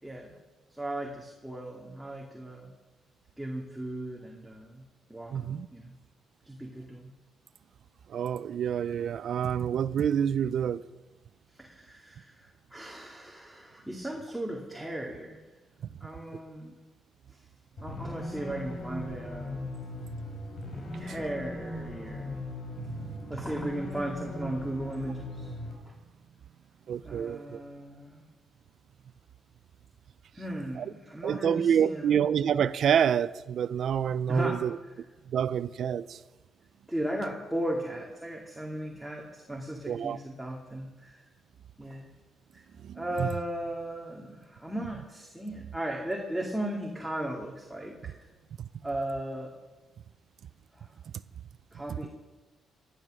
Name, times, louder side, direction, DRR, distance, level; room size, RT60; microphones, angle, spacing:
voice 1, 0.0-0.3 0.8-2.7 3.4-4.8 5.1-5.9 6.4-7.1 11.5-15.4 16.0-16.8 17.3-17.4 17.8-19.6 20.9-22.4 23.3-25.5 27.0-28.2 30.3-32.2 34.3-35.0 36.9-41.2 41.8-42.1 42.5-42.6 42.9-48.1 48.8-49.5 50.7-50.9 51.7-52.1, right 1 dB, 5° right, 2.2 m, -36 dB
voice 2, 5.3-5.7 8.1-10.8 22.8-23.3 26.9-27.6 30.8-30.9 31.2-34.8 35.3-36.2 39.9-40.2 42.8-43.3, right 8 dB, 65° right, 0.5 m, -28 dB
sound 1, 17.8-25.7, left 1 dB, 55° left, 5.8 m, -38 dB
18.0 x 11.5 x 6.3 m
cardioid pair, 90°, 0 cm